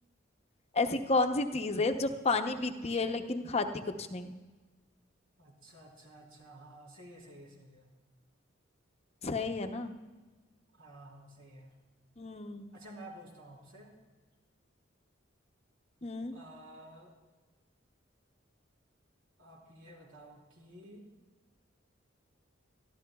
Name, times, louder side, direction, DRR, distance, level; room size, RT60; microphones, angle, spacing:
voice 1, 0.7-3.7 4.0-4.3 9.2-9.9 12.2-12.7 16.0-16.3, left 3 dB, 35° left, 6 dB, 0.7 m, -31 dB
voice 2, 5.4-7.9 10.8-11.7 12.7-13.9 16.3-17.1 19.4-21.0, right 1 dB, 90° right, -2 dB, 3.8 m, -52 dB
23.5 x 13.0 x 2.3 m, 1.3 s
head